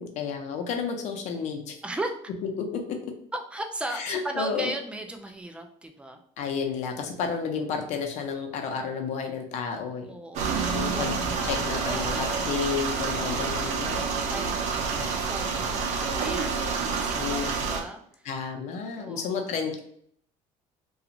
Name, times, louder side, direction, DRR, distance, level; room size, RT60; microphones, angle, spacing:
voice 1, 0.0-1.8 2.7-2.8 3.9-4.7 6.4-10.1 10.7-11.2 11.4-14.1 14.9-15.1 17.2-17.5 18.2-19.8, left 6 dB, 65° left, 4 dB, 0.6 m, -31 dB
voice 2, 3.3-6.2 10.1-11.1 11.9-12.5 14.0-18.3 18.9-19.6, right 1 dB, 10° right, 5 dB, 0.4 m, -37 dB
sound 1, 10.3-17.8, right 5 dB, 65° right, 0.6 m, -28 dB
2.5 x 2.3 x 2.9 m, 0.65 s
cardioid pair, 120°, 13 cm